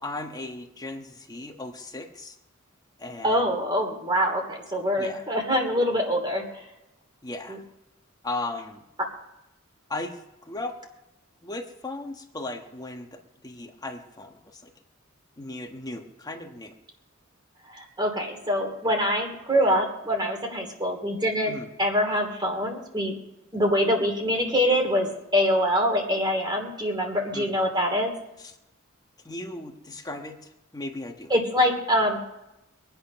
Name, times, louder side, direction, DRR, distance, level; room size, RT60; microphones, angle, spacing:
voice 1, 0.0-2.4 3.0-3.5 5.0-5.2 7.2-7.6 8.2-8.8 9.9-10.7 11.4-14.7 15.4-16.7 21.4-21.7 27.3-27.6 28.4-28.5 29.2-31.3, left 2 dB, 20° left, 3 dB, 1.3 m, -37 dB
voice 2, 3.2-6.6 7.5-7.6 17.7-21.5 21.8-23.1 23.5-28.1 31.3-32.2, equal, 20° right, 2 dB, 2.7 m, -24 dB
23.0 x 8.9 x 5.9 m, 0.92 s
head